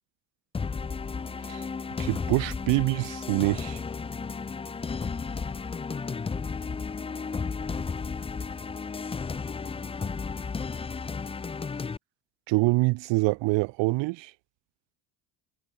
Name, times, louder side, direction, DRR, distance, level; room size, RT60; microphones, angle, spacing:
sound 1, 0.5-12.0, left 5 dB, 15° left, 0.4 m, -33 dB
voice 1, 2.0-3.8 12.5-14.3, right 25 dB, 65° right, 0.5 m, -25 dB
voice 2, 4.8-4.9, right 7 dB, 40° right, 6.3 m, -66 dB
supercardioid pair, 95°, 47 cm